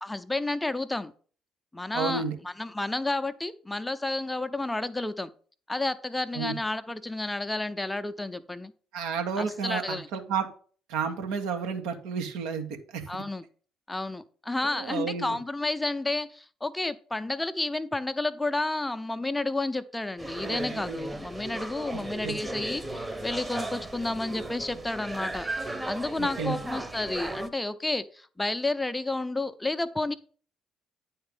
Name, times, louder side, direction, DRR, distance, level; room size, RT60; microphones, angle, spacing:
voice 1, 0.0-1.1 1.7-5.3 5.7-8.7 9.4-10.1 13.1-13.4 13.9-25.5 25.8-30.2, left 2 dB, 15° left, 12 dB, 0.6 m, -31 dB
voice 2, 1.9-2.3 6.3-6.5 8.9-10.4 10.9-12.7 12.9-13.1 14.7-15.4 22.2-22.3 26.2-26.6, right 6 dB, 75° right, 5 dB, 1.3 m, -31 dB
sound 1, 20.2-27.5, right 2 dB, 20° right, 1.1 m, -36 dB
9.5 x 4.3 x 5.3 m, 0.43 s
hypercardioid pair, 55°, 0 cm